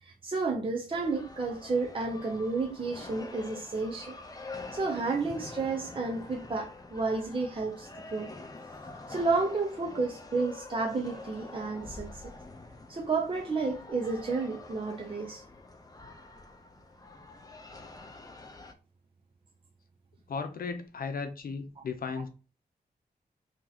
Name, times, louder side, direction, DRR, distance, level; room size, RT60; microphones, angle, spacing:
voice 1, 0.0-4.2 4.5-8.3 9.1-12.2 12.9-15.4, right 3 dB, 35° right, 0.6 m, -31 dB
sound 1, 0.9-18.7, left 3 dB, 25° left, 0.6 m, -46 dB
voice 2, 20.3-22.3, left 5 dB, 65° left, 0.6 m, -35 dB
2.9 x 2.8 x 3.9 m
wide cardioid pair, 105°, 16 cm